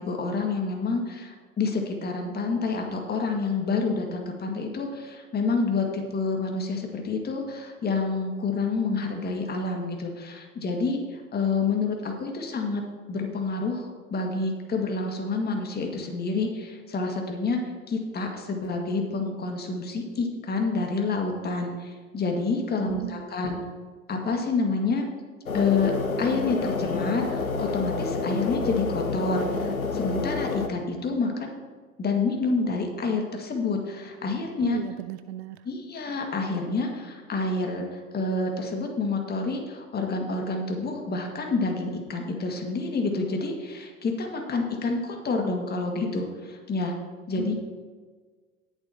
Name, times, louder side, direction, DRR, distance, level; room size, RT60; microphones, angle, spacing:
voice 1, 0.0-12.8 13.1-17.6 17.9-23.6 24.1-25.1 25.5-25.9 26.2-31.6 32.0-34.8 35.6-46.9 47.3-47.5, left 3 dB, 25° left, 2 dB, 1.9 m, -28 dB
voice 2, 22.8-23.7 34.6-35.6 47.4-47.5, right 15 dB, 55° right, 12 dB, 0.5 m, -36 dB
sound 1, 25.5-30.7, left 4 dB, 85° left, 0.9 m, -28 dB
18.5 x 7.4 x 2.9 m, 1.5 s
figure-of-eight pair, 75°, 41 cm